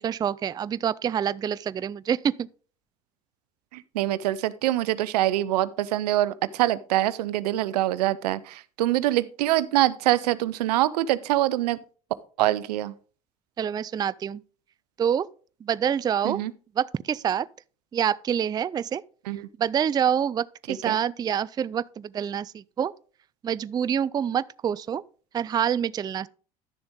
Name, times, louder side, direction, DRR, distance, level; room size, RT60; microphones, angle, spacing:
voice 1, 0.0-2.5 13.6-14.4 15.0-15.3 15.6-16.4 16.8-17.5 17.9-19.0 19.6-22.9 23.4-25.0 25.3-26.3, right 8 dB, 20° right, 0.3 m, -26 dB
voice 2, 3.7-11.8 12.4-12.9 16.2-16.5 19.3-19.4 20.7-21.0, right 15 dB, 75° right, 0.6 m, -24 dB
11.5 x 6.9 x 3.9 m
hypercardioid pair, 70°, 20 cm